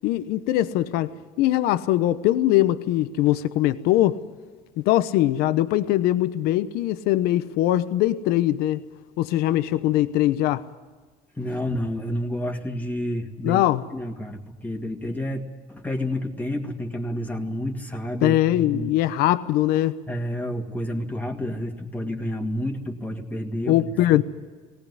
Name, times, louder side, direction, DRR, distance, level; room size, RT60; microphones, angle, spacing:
voice 1, 0.0-4.2 4.8-8.8 9.2-10.6 13.4-13.8 18.2-20.0 23.7-24.2, left 14 dB, 80° left, 0.9 m, -21 dB
voice 2, 11.4-13.6 13.9-18.9 20.1-24.2, equal, 10° left, 2.3 m, -30 dB
19.0 x 18.5 x 9.8 m
cardioid pair, 115°, 16 cm